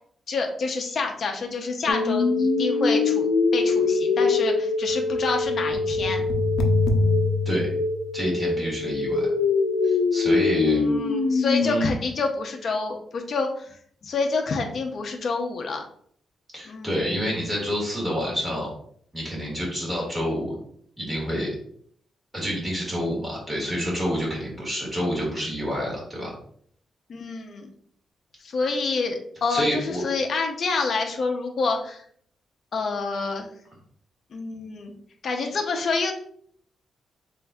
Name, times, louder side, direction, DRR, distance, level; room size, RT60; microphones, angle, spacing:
voice 1, 0.3-6.3 10.7-13.7 14.0-15.8 16.7-16.9 27.1-27.7 28.4-32.0 32.7-33.5 34.3-34.9 35.2-36.1, left 4 dB, 45° left, 3 dB, 0.6 m, -28 dB
sound 1, 1.9-11.9, left 3 dB, 85° left, 0.6 m, -23 dB
voice 2, 8.1-9.3 9.8-10.8 11.6-11.9 16.5-18.7 19.1-20.5 21.0-21.5 22.3-26.3 29.5-30.0, equal, 10° right, -4 dB, 1.8 m, -28 dB
7.2 x 2.6 x 2.3 m, 0.62 s
wide cardioid pair, 165°, 0 cm